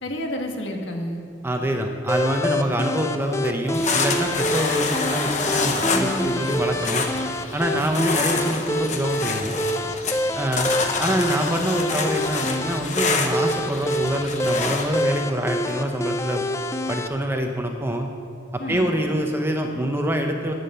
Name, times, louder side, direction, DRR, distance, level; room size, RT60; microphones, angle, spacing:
voice 1, 0.0-1.2 5.8-6.4 18.6-18.9, left 1 dB, 65° left, 2 dB, 1.7 m, -30 dB
voice 2, 1.4-7.0 7.5-9.6 10.3-16.5 16.9-18.1 18.5-20.5, right 1 dB, 10° right, 3 dB, 0.7 m, -25 dB
sound 1, 2.1-17.1, left 1 dB, 15° left, 0.3 m, -27 dB
sound 2, 3.7-15.0, left 4 dB, 35° left, 1.0 m, -27 dB
11.0 x 9.3 x 6.7 m, 2.5 s
head